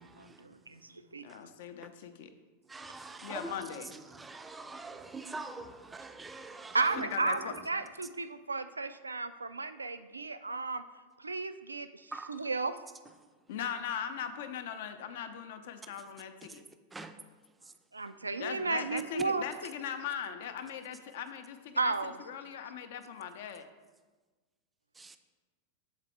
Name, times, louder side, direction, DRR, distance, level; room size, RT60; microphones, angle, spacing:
voice 1, 0.0-1.3 6.7-10.8 11.2-12.8 17.9-19.4 21.8-22.2, right 3 dB, 80° right, 0.3 m, -34 dB
voice 2, 1.2-2.3 3.2-4.0 7.0-7.5 13.5-16.6 18.4-23.7, left 8 dB, 55° left, 0.5 m, -40 dB
voice 3, 2.7-3.5 4.1-6.8 12.1-12.5 16.9-17.1 25.0-25.2, right 3 dB, 10° right, 0.4 m, -44 dB
7.4 x 4.1 x 4.6 m
figure-of-eight pair, 90°, 0 cm